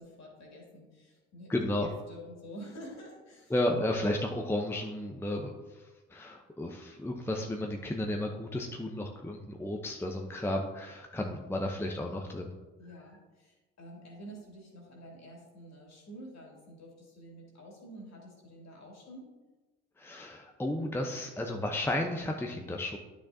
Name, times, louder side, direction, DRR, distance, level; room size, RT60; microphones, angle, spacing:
voice 1, 0.0-1.5 1.8-3.5 12.8-19.3, equal, 50° left, -2 dB, 2.7 m, -49 dB
voice 2, 1.5-1.9 3.5-12.5 20.0-23.0, left 1 dB, 5° left, 2 dB, 0.8 m, -33 dB
10.0 x 6.2 x 2.7 m, 1.2 s
hypercardioid pair, 55°, 34 cm